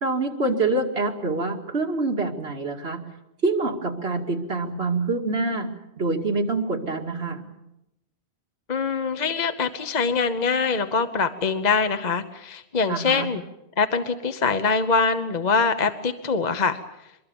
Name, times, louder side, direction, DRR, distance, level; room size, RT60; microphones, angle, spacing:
voice 1, 0.0-3.0 3.4-5.7 6.0-7.5 12.9-13.3, right 3 dB, 75° right, 3 dB, 2.7 m, -26 dB
voice 2, 8.7-13.4 13.8-16.8, left 4 dB, 45° left, 9 dB, 1.1 m, -23 dB
24.5 x 22.0 x 7.1 m, 0.89 s
omnidirectional pair, 1.1 m